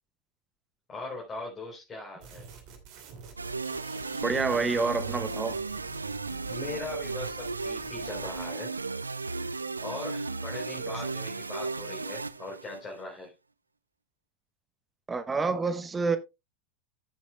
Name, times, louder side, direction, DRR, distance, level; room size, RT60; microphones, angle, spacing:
voice 1, 0.9-2.5 6.5-8.7 9.8-13.3, left 2 dB, 25° left, 3.8 m, -40 dB
sound 1, 2.2-8.5, right 6 dB, 50° right, 2.7 m, -49 dB
sound 2, 3.4-13.0, right 4 dB, 80° right, 0.4 m, -35 dB
voice 2, 4.2-5.6 15.1-16.2, right 4 dB, 15° right, 1.1 m, -28 dB
15.0 x 7.3 x 2.3 m
figure-of-eight pair, 85°, 0 cm